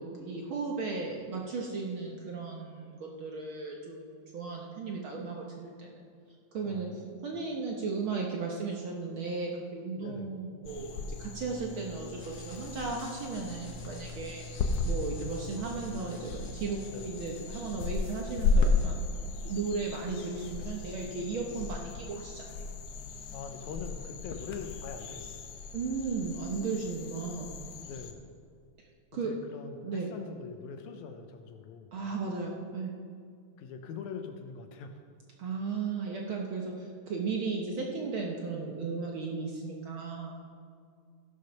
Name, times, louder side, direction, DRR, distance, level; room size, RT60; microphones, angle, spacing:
voice 1, 0.0-6.0 6.5-14.4 14.8-22.5 25.7-27.5 28.8-28.9 29.1-29.3 29.8-30.1 31.9-32.9 35.4-40.4, right 4 dB, 60° right, 0 dB, 1.4 m, -35 dB
voice 2, 6.7-7.2 10.0-10.3 16.9-17.1 23.3-25.4 27.8-28.3 29.2-31.9 33.6-35.0, left 5 dB, 85° left, 5 dB, 2.2 m, -43 dB
sound 1, 10.6-28.1, left 3 dB, 70° left, 1.6 m, -35 dB
sound 2, 12.2-18.8, left 2 dB, 30° left, 2.3 m, -57 dB
15.5 x 6.5 x 5.7 m, 2.2 s
omnidirectional pair, 3.3 m